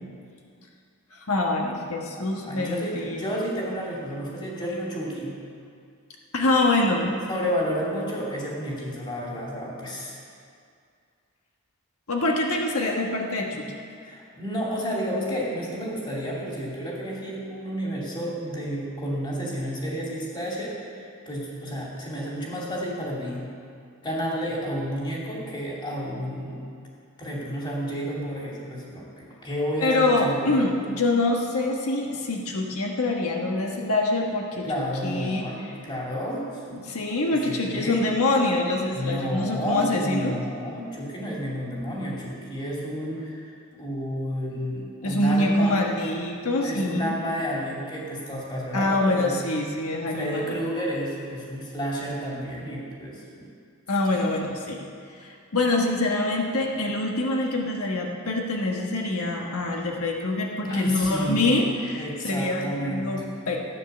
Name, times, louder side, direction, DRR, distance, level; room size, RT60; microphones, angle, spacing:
voice 1, 1.1-3.2 6.3-7.1 12.1-13.7 29.8-34.7 35.0-35.5 36.7-40.4 45.0-47.2 48.7-50.6 53.9-54.9 55.1-63.6, left 2 dB, 80° left, 0 dB, 1.4 m, -25 dB
voice 2, 2.2-5.4 7.3-10.2 14.0-23.4 24.0-26.6 27.2-30.5 34.6-36.8 37.3-38.0 38.9-45.7 46.6-49.4 50.0-53.5 54.0-54.2 60.6-61.5 62.0-63.2, equal, 20° left, -4 dB, 2.7 m, -31 dB
15.0 x 9.4 x 6.8 m, 2.3 s
head